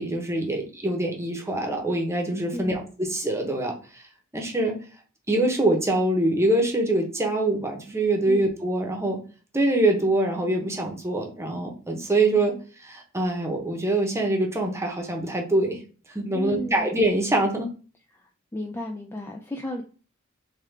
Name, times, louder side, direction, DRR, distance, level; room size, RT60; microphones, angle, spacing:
voice 1, 0.0-4.0 4.3-4.8 5.3-9.2 9.5-12.5 12.8-15.8 16.1-17.7, right 2 dB, 15° right, 1 dB, 0.9 m, -24 dB
voice 2, 2.5-2.8 8.3-8.5 16.3-16.9 18.1-18.2 18.5-19.8, left 1 dB, 10° left, 1 dB, 0.3 m, -33 dB
3.6 x 3.3 x 3.3 m, 0.37 s
head